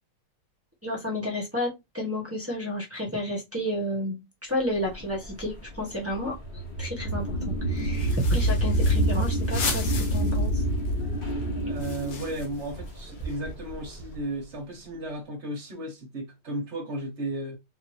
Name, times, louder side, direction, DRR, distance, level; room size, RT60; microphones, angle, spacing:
voice 1, 0.8-6.3 6.8-10.6, left 1 dB, 10° right, 0.8 m, -31 dB
sound 1, 4.9-13.9, right 1 dB, 35° left, 1.0 m, -27 dB
sound 2, 7.8-10.5 10.9-11.0 11.2-14.3, left 3 dB, 75° left, 1.6 m, -37 dB
voice 2, 11.6-17.6, right 1 dB, 45° right, 0.9 m, -34 dB
3.8 x 2.7 x 3.1 m
omnidirectional pair, 2.1 m